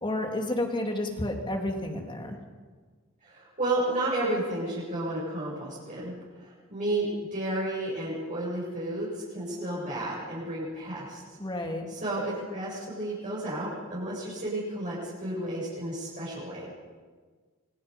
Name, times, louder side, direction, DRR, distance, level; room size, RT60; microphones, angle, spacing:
voice 1, 0.0-2.4 11.4-11.9, left 1 dB, 25° left, 2 dB, 3.3 m, -31 dB
voice 2, 3.2-11.2 11.9-16.7, right 1 dB, 40° right, -8 dB, 8.0 m, -32 dB
27.5 x 25.0 x 5.5 m, 1.5 s
head